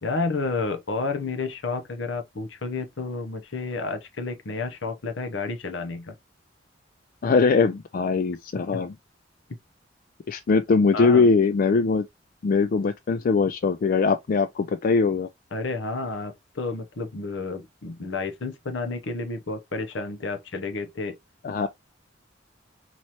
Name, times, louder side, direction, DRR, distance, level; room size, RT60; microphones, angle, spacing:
voice 1, 0.0-6.1 8.5-8.8 10.9-11.3 15.5-21.2, left 3 dB, 70° left, 0.8 m, -31 dB
voice 2, 7.2-8.9 10.3-12.1 12.4-15.3 21.4-21.7, left 4 dB, 45° left, 0.3 m, -21 dB
4.1 x 3.0 x 2.9 m
head